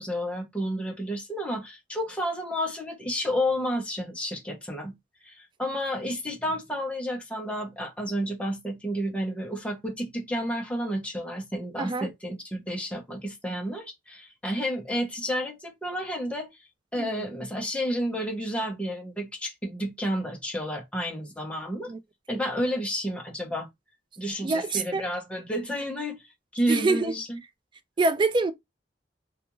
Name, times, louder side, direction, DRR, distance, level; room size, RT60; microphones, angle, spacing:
voice 1, 0.0-4.9 5.2-16.5 16.9-21.9 22.3-23.7 24.2-26.2 26.5-27.4, equal, 5° left, 0.7 m, -31 dB
voice 2, 11.8-12.1 17.0-17.2 21.9-22.0 22.3-22.4 24.4-25.0 26.7-27.2 28.0-28.5, right 3 dB, 25° right, 0.3 m, -26 dB
2.4 x 2.3 x 2.9 m
head